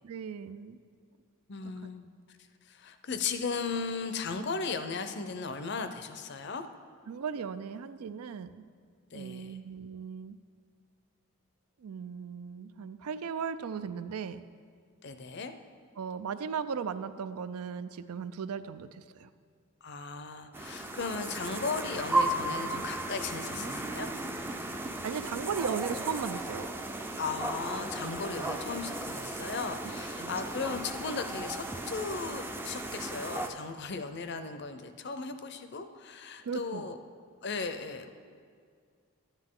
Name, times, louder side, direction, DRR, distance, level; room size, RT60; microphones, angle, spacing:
voice 1, 0.0-0.8 7.1-8.6 9.1-10.4 11.8-14.4 16.0-19.3 25.0-26.7 30.2-30.4 36.4-36.9, right 6 dB, 85° right, 13 dB, 0.4 m, -37 dB
voice 2, 1.5-2.1 2.7-6.7 9.1-9.6 15.0-15.5 19.8-24.1 27.2-37.0 37.4-38.1, left 4 dB, 50° left, 8 dB, 0.5 m, -36 dB
sound 1, 20.5-33.5, right 2 dB, 10° right, 0.4 m, -35 dB
11.5 x 9.8 x 3.7 m, 2.1 s
head